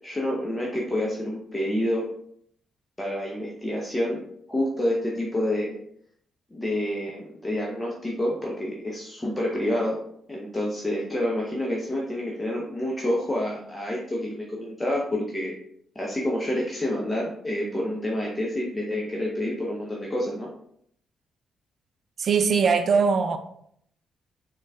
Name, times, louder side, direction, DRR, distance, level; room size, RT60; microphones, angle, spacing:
voice 1, 0.0-2.0 3.0-4.2 4.5-5.8 6.5-10.0 10.3-15.5 16.0-20.5, left 1 dB, 20° left, 0.7 m, -28 dB
voice 2, 22.2-23.4, right 5 dB, 55° right, 0.3 m, -21 dB
3.8 x 2.2 x 2.3 m
hypercardioid pair, 40°, 0 cm